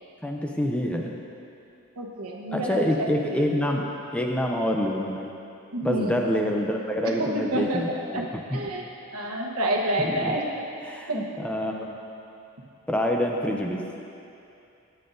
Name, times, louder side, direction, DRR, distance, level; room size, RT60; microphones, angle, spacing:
voice 1, 0.2-1.2 2.5-3.9 4.1-5.3 5.8-8.7 10.0-10.4 10.8-11.9 12.9-13.8, equal, 5° left, 0 dB, 0.5 m, -27 dB
voice 2, 2.0-3.4 5.7-6.2 7.2-8.2 8.5-10.4 11.1-11.2, right 1 dB, 90° right, 0 dB, 1.1 m, -29 dB
13.5 x 8.7 x 2.6 m, 2.7 s
head